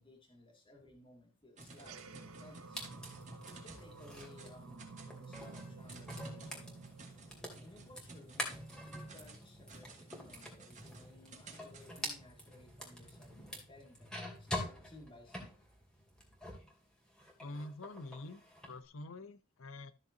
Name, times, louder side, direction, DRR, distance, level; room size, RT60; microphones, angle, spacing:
voice 1, 0.0-2.8 3.5-6.8 7.6-15.5, left 1 dB, 25° left, 2 dB, 2.4 m, -59 dB
sound 1, 1.6-16.7 17.1-18.7, equal, 5° left, 2.4 m, -47 dB
sound 2, 1.6-3.9 4.2-4.5 4.8-11.9, right 3 dB, 35° right, 2.2 m, -56 dB
sound 3, 1.7-8.4, right 4 dB, 75° right, 0.9 m, -53 dB
voice 2, 17.4-19.9, left 2 dB, 65° left, 13 dB, 0.7 m, -46 dB
13.0 x 6.6 x 2.8 m, 0.32 s
head